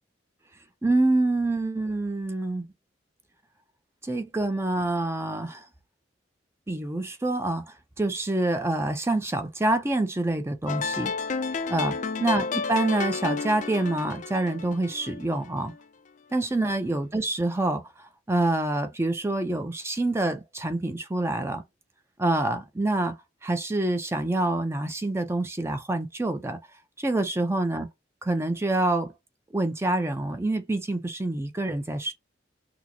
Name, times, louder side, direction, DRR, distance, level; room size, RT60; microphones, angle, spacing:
voice 1, 0.8-2.7 4.0-5.7 6.7-11.1 11.7-15.7 16.3-21.6 22.2-23.2 23.4-26.6 27.0-27.9 28.2-29.1 29.5-32.1, right 2 dB, 15° right, 0.5 m, -26 dB
sound 1, 10.7-15.8, left 5 dB, 40° left, 0.4 m, -31 dB
6.0 x 2.0 x 2.9 m
head